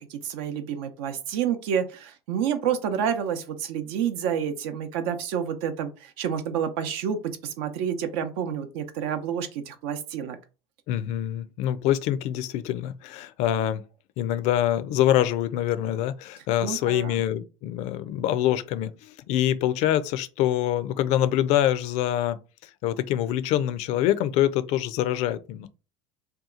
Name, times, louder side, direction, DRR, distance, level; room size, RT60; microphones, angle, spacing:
voice 1, 0.0-10.4 16.6-17.3, right 8 dB, 75° right, 0.7 m, -29 dB
voice 2, 10.9-13.8 14.2-22.4 22.8-25.7, left 12 dB, 60° left, 0.4 m, -25 dB
2.8 x 2.3 x 3.7 m
supercardioid pair, 95°, 13 cm